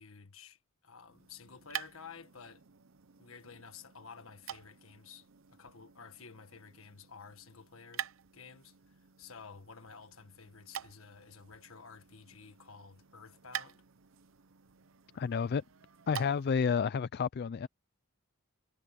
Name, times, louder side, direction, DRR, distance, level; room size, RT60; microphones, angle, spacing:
voice 1, 0.0-2.6 3.2-8.0 8.3-13.8, left 5 dB, 65° left, 1.8 m, -52 dB
sound 1, 1.0-16.7, right 9 dB, 65° right, 0.8 m, -48 dB
voice 2, 15.1-15.6 16.1-17.7, left 6 dB, 50° left, 0.4 m, -30 dB
head